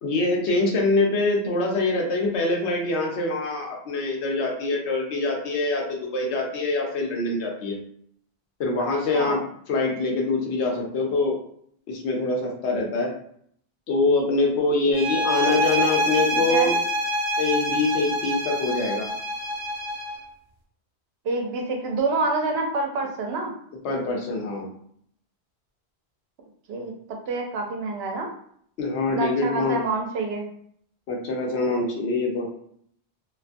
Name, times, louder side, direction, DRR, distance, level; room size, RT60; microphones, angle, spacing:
voice 1, 0.0-7.8 8.6-9.4 9.7-11.4 11.9-13.1 13.9-16.8 17.4-19.1 23.8-24.7 28.8-29.8 31.1-32.5, left 3 dB, 85° left, 0 dB, 0.9 m, -24 dB
sound 1, 14.9-20.2, equal, 35° right, 0.5 m, -26 dB
voice 2, 16.3-16.7 21.2-23.5 26.7-26.9 27.3-28.3 29.1-30.4, right 3 dB, 70° right, 2 dB, 0.8 m, -27 dB
2.5 x 2.3 x 2.5 m, 0.66 s
omnidirectional pair, 1.1 m